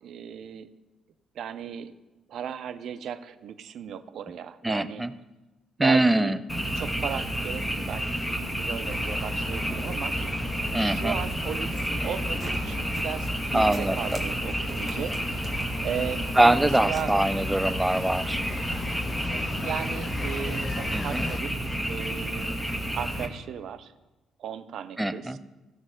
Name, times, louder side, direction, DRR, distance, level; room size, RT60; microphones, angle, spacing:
voice 1, 0.0-0.7 1.3-1.9 2.3-5.0 5.8-6.4 6.7-10.2 10.8-15.2 15.8-17.1 19.3-21.6 21.9-22.6 22.9-23.9 24.4-25.4, right 8 dB, 60° right, 11 dB, 0.5 m, -36 dB
voice 2, 4.6-5.1 5.8-6.4 10.7-11.2 13.5-14.2 16.4-18.4 20.9-21.3 25.0-25.4, right 1 dB, 10° right, 13 dB, 0.5 m, -23 dB
Frog, 6.5-23.3, right 1 dB, 5° left, 1.8 m, -30 dB
sound 1, 8.8-21.4, left 4 dB, 40° left, 0.3 m, -38 dB
sound 2, 11.2-13.4 13.7-17.2, right 3 dB, 40° right, 1.7 m, -47 dB
16.0 x 6.1 x 3.7 m, 1.1 s
figure-of-eight pair, 45°, 0 cm